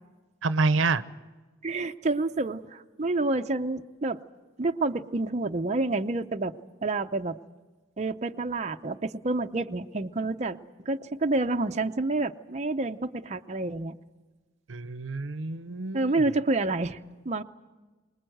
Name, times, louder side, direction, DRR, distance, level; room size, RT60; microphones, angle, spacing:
voice 1, 0.4-1.0 14.7-16.1, right 3 dB, 80° right, 14 dB, 0.8 m, -27 dB
voice 2, 1.6-4.2 4.6-6.6 6.8-7.4 8.0-10.6 10.8-13.9 15.9-17.0 17.2-17.4, right 2 dB, 35° right, 6 dB, 0.6 m, -28 dB
24.5 x 20.5 x 7.8 m, 1.3 s
head